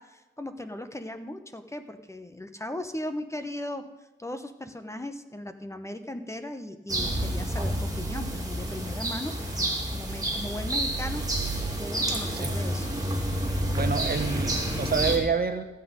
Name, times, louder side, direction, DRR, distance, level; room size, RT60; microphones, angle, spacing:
voice 1, 0.0-3.8 4.2-12.9, left 1 dB, 15° left, 8 dB, 0.9 m, -37 dB
sound 1, 6.9-15.2, right 1 dB, 20° right, 2.9 m, -29 dB
voice 2, 13.7-15.7, right 5 dB, 50° right, 8 dB, 1.2 m, -28 dB
15.0 x 8.2 x 5.2 m, 1.1 s
cardioid pair, 80°, 21 cm